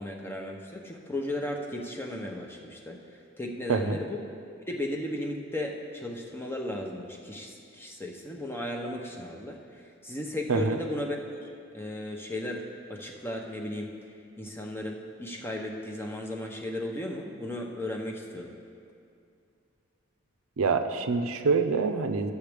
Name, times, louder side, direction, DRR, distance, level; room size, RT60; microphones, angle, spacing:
voice 1, 0.0-3.0 3.4-4.2 4.6-11.5 11.7-13.9 14.4-18.6, left 1 dB, 10° left, 1 dB, 0.6 m, -35 dB
voice 2, 20.6-22.3, right 4 dB, 85° right, 7 dB, 0.5 m, -26 dB
13.0 x 7.0 x 3.4 m, 2.5 s
head